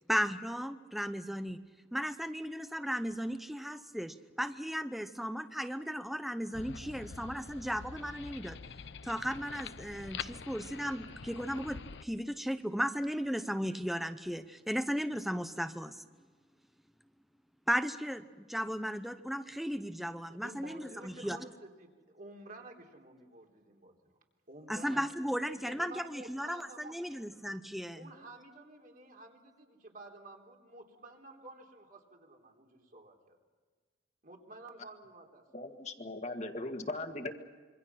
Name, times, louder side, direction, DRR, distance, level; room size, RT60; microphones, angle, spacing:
voice 1, 0.1-1.6 1.9-8.6 9.0-16.0 17.7-21.4 24.7-28.1, equal, ahead, 9 dB, 0.8 m, -35 dB
sound 1, 6.5-12.0, left 5 dB, 75° left, 0.7 m, -45 dB
voice 2, 20.3-24.1 24.5-25.0 25.6-27.0 27.9-33.4 34.2-35.4, right 2 dB, 50° right, 1 dB, 3.6 m, -51 dB
voice 3, 35.5-37.3, left 2 dB, 40° left, 6 dB, 1.9 m, -39 dB
26.5 x 24.0 x 5.9 m, 1.5 s
head